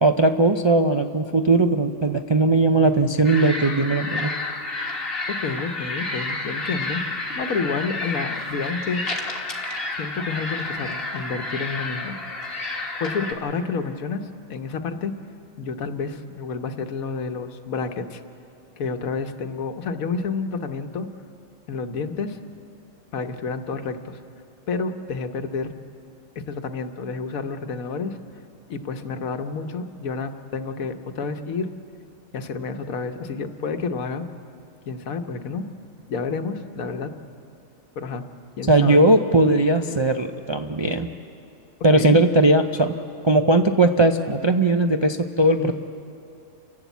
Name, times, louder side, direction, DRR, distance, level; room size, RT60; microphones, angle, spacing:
voice 1, 0.0-4.3 38.7-41.1 41.8-42.9 43.2-45.7, right 2 dB, 45° right, 5 dB, 0.3 m, -18 dB
sound 1, 3.2-13.3, left 2 dB, 45° left, 2.0 m, -30 dB
voice 2, 5.4-9.0 10.0-12.2 13.0-15.1 15.6-18.2 18.8-21.1 21.7-22.4 23.1-24.2 24.7-25.7 26.5-28.2 28.7-31.7 32.3-34.2 34.9-35.7 36.1-37.1 38.0-38.2 38.6-39.0 41.9-42.2 45.6-45.7, left 4 dB, 85° left, 8 dB, 1.4 m, -29 dB
29.5 x 11.5 x 8.2 m, 2.7 s
omnidirectional pair, 1.4 m